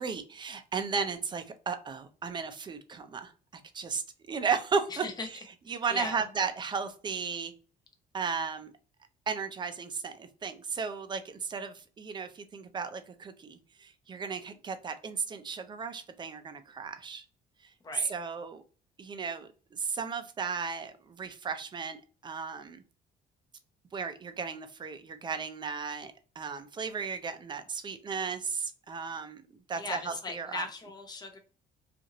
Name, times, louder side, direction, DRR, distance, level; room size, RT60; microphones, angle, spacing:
voice 1, 0.0-5.0 5.7-7.5 8.1-8.7 9.3-17.2 18.1-18.6 19.0-22.0 22.2-22.8 23.9-29.4 29.7-30.6, right 5 dB, 25° right, 9 dB, 0.5 m, -35 dB
voice 2, 4.9-5.3 5.7-6.2 17.8-18.1 29.8-31.4, left 3 dB, 25° left, 5 dB, 0.7 m, -38 dB
2.7 x 2.5 x 2.8 m, 0.37 s
cardioid pair, 110°, 17 cm